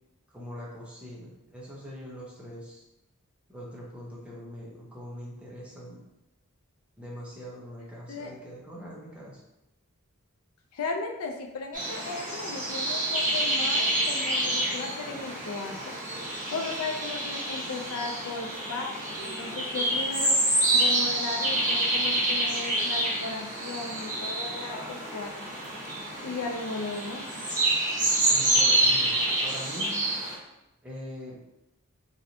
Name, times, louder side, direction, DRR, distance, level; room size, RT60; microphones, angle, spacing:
voice 1, 0.3-2.8 3.5-6.0 7.0-9.4 28.2-30.0 30.8-31.4, equal, 5° right, -6 dB, 0.7 m, -42 dB
voice 2, 10.7-15.8 16.2-20.4 20.7-25.3 26.2-27.3, left 4 dB, 70° left, 3 dB, 0.4 m, -36 dB
sound 1, 11.7-30.3, right 1 dB, 35° right, 1.0 m, -27 dB
3.1 x 2.6 x 2.7 m, 0.92 s
head